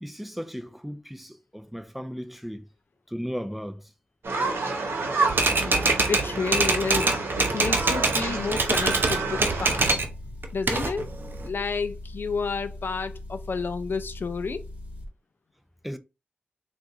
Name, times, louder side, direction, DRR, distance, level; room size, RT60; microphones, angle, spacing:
voice 1, 0.0-2.7 3.1-3.9 15.8-16.0, equal, 5° right, 0.5 m, -36 dB
sound 1, 4.2-10.0, right 3 dB, 70° right, 1.0 m, -29 dB
Typewriter, 5.3-8.3 8.5-10.1 10.4-11.5, right 3 dB, 55° right, 0.6 m, -24 dB
voice 2, 5.4-10.1 10.5-11.1 11.4-14.6, left 4 dB, 55° left, 0.3 m, -31 dB
Motor vehicle (road) / Engine, 8.2-15.1, left 1 dB, 30° right, 1.7 m, -40 dB
3.8 x 2.5 x 2.4 m
cardioid pair, 40°, 4 cm